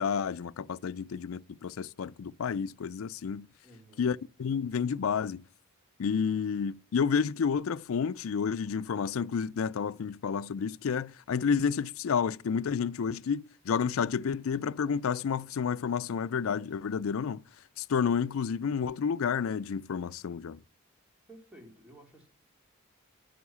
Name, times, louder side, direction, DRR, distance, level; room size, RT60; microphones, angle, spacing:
voice 1, 0.0-3.5 4.0-5.4 6.0-17.4 17.8-20.6, left 6 dB, 80° left, 0.4 m, -30 dB
voice 2, 3.6-4.1 21.3-22.3, right 1 dB, 5° right, 2.4 m, -53 dB
9.4 x 6.3 x 8.5 m
head